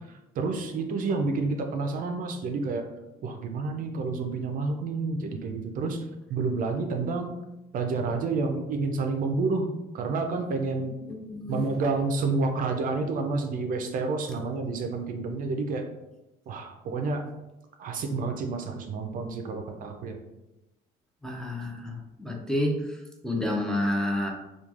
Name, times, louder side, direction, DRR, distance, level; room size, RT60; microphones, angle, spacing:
voice 1, 0.1-2.9 3.2-6.0 6.3-7.4 7.7-11.0 11.5-15.8 16.5-17.2 17.8-20.2, right 3 dB, 55° right, 5 dB, 0.4 m, -29 dB
voice 2, 10.9-11.6 21.2-24.3, left 1 dB, 5° left, -1 dB, 0.4 m, -30 dB
3.0 x 2.3 x 2.4 m, 0.97 s
cardioid pair, 110°, 17 cm